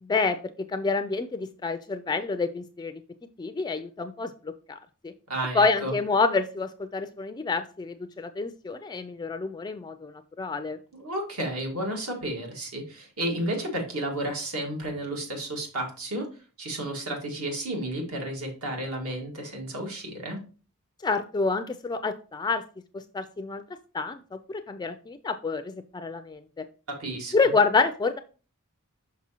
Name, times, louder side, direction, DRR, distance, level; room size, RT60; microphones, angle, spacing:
voice 1, 0.0-2.9 3.4-4.8 5.0-5.1 5.5-10.8 21.0-22.6 22.9-26.7 27.3-28.2, left 4 dB, 20° left, 9 dB, 0.3 m, -28 dB
voice 2, 5.3-5.9 10.9-16.3 16.6-20.4 27.0-27.3, right 1 dB, 70° right, 1 dB, 1.9 m, -32 dB
6.0 x 5.9 x 2.8 m, 0.36 s
head